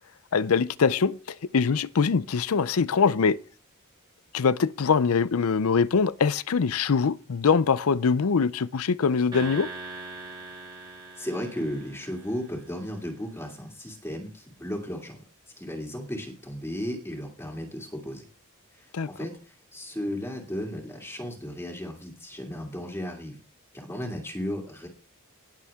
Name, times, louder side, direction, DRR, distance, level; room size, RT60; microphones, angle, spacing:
voice 1, 0.3-3.4 4.3-9.7 18.9-19.1, left 5 dB, 75° left, 0.5 m, -23 dB
sound 1, 9.3-12.8, right 3 dB, 20° right, 2.3 m, -42 dB
voice 2, 11.2-15.2 15.6-18.3 18.8-23.3 23.7-24.9, equal, 10° left, 2.5 m, -35 dB
18.5 x 7.1 x 3.6 m
head